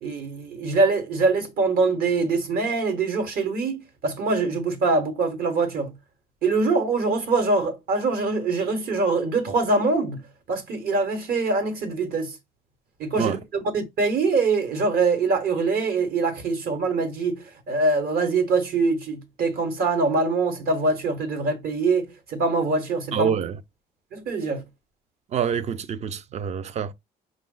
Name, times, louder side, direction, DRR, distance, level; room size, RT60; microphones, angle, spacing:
voice 1, 0.0-5.9 6.4-10.2 10.5-12.4 13.0-23.3 24.1-24.6, right 3 dB, 60° right, 1.3 m, -24 dB
voice 2, 23.1-23.6 25.3-26.9, right 8 dB, 40° right, 0.5 m, -26 dB
5.3 x 2.3 x 3.8 m
cardioid pair, 110°, 17 cm